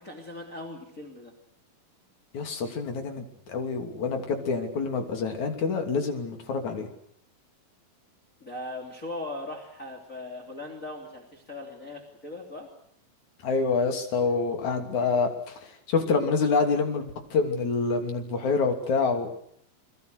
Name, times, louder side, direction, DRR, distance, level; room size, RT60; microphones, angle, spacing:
voice 1, 0.0-1.3 8.4-12.7, left 2 dB, 20° left, 2 dB, 3.2 m, -39 dB
voice 2, 2.3-6.9 13.4-19.3, left 4 dB, 55° left, 4 dB, 4.1 m, -27 dB
28.0 x 22.5 x 6.6 m, 0.69 s
omnidirectional pair, 4.2 m